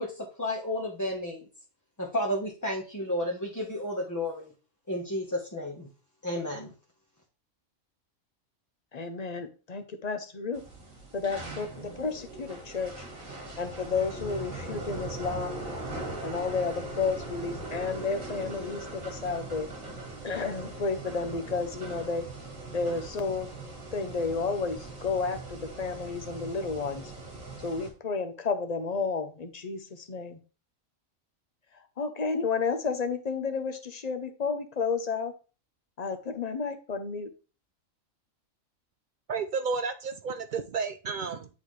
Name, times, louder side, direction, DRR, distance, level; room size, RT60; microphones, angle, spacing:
voice 1, 0.0-1.5 2.0-4.5 4.9-5.9 6.2-6.7, left 1 dB, 15° left, -1 dB, 1.0 m, -32 dB
voice 2, 8.9-10.6 11.1-12.9 13.6-15.6 16.2-19.7 20.2-22.3 22.7-23.5 23.9-27.1 27.6-30.4 32.0-35.3 36.0-37.3, left 4 dB, 40° left, 8 dB, 0.7 m, -31 dB
sound 1, 10.5-27.9, right 2 dB, 90° right, 2.3 m, -40 dB
voice 3, 39.3-41.5, right 5 dB, 65° right, 9 dB, 0.4 m, -32 dB
10.0 x 3.9 x 3.2 m, 0.35 s
omnidirectional pair, 1.4 m